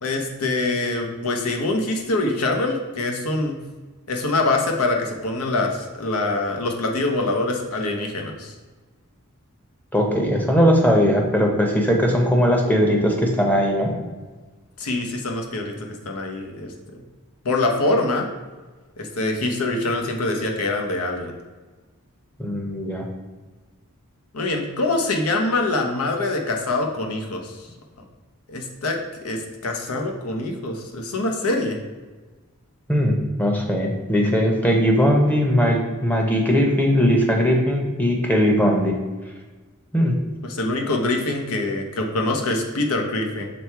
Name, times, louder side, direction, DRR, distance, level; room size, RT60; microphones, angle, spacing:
voice 1, 0.0-3.6 4.1-8.5 14.8-15.7 16.0-17.0 17.4-18.3 19.0-21.3 24.3-27.7 28.5-29.0 29.2-31.8 40.4-43.5, left 2 dB, 75° left, 2 dB, 0.9 m, -24 dB
voice 2, 9.9-13.9 22.4-23.1 32.9-39.0 39.9-40.1, equal, 10° left, 1 dB, 0.8 m, -19 dB
6.2 x 3.4 x 4.5 m, 1.3 s
head